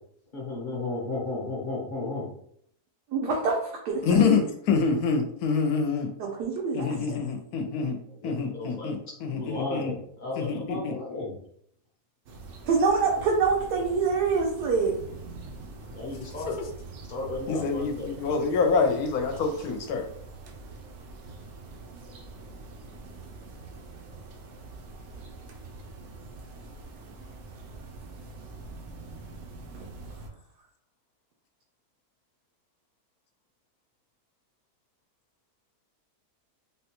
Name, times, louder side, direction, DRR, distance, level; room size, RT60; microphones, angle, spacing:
voice 1, 0.3-2.3 8.2-9.0 9.4-11.3 15.9-16.6 17.1-18.1, left 2 dB, 40° left, -2 dB, 0.8 m, -34 dB
voice 2, 3.1-4.1 6.2-6.9 12.6-15.0 29.8-29.9, right 4 dB, 90° right, -1 dB, 1.2 m, -25 dB
voice 3, 4.0-6.2 6.7-9.9 10.3-11.0 16.4-16.7 17.5-20.0, left 5 dB, 75° left, 4 dB, 1.0 m, -26 dB
sound 1, 12.3-30.3, right 3 dB, 70° right, 0.7 m, -44 dB
3.7 x 2.2 x 2.9 m, 0.66 s
omnidirectional pair, 1.7 m